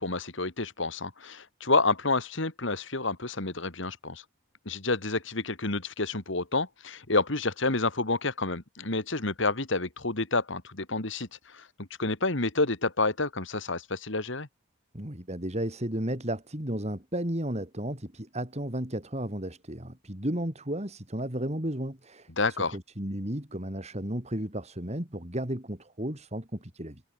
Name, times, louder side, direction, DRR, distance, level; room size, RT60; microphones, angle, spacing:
voice 1, 0.0-4.2 4.7-14.5 22.4-22.8, left 3 dB, 65° left, 2.5 m, -29 dB
voice 2, 14.9-27.0, right 1 dB, 30° right, 3.7 m, -33 dB
head